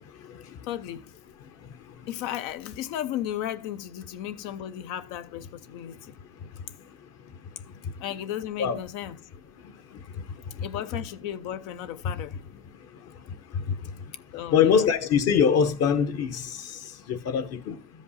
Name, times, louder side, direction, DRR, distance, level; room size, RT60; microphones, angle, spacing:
voice 1, 0.6-1.0 2.1-6.1 8.0-9.2 10.6-12.4 14.3-14.9, left 11 dB, 80° left, 0.8 m, -34 dB
voice 2, 14.5-16.6 17.1-17.8, left 7 dB, 50° left, 0.9 m, -22 dB
13.5 x 5.2 x 4.1 m
cardioid pair, 130°, 31 cm